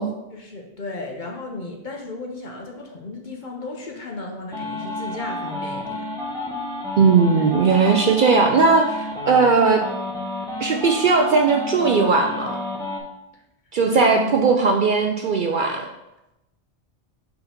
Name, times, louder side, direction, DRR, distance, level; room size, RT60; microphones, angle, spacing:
voice 1, 0.3-6.1 13.3-13.4 13.8-14.4, left 3 dB, 45° left, 1 dB, 0.8 m, -34 dB
sound 1, 4.5-13.0, left 2 dB, 5° left, 1.0 m, -30 dB
voice 2, 7.0-9.8 10.6-12.6 13.7-15.9, right 4 dB, 60° right, 3 dB, 0.6 m, -18 dB
4.8 x 4.0 x 5.1 m, 0.93 s
omnidirectional pair, 1.2 m